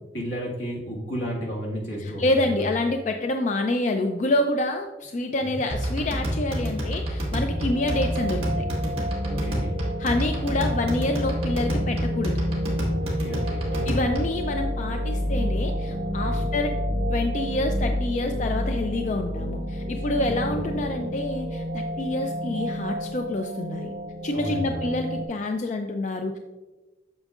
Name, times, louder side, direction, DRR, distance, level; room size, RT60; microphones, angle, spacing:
voice 1, 0.1-2.7 5.4-5.6 9.3-9.8 13.0-14.0 16.2-16.5 20.0-20.6 24.3-24.9, equal, 75° left, -2 dB, 1.7 m, -33 dB
voice 2, 2.0-8.6 10.0-12.4 13.7-16.8 17.1-23.9 24.2-26.4, left 2 dB, 40° left, 5 dB, 0.4 m, -27 dB
sound 1, 5.7-14.4, equal, 30° right, 1.6 m, -28 dB
sound 2, 7.5-25.3, equal, 80° right, 0.9 m, -32 dB
sound 3, 14.1-21.8, left 1 dB, 10° right, 1.3 m, -29 dB
8.8 x 6.4 x 2.4 m, 1.2 s
head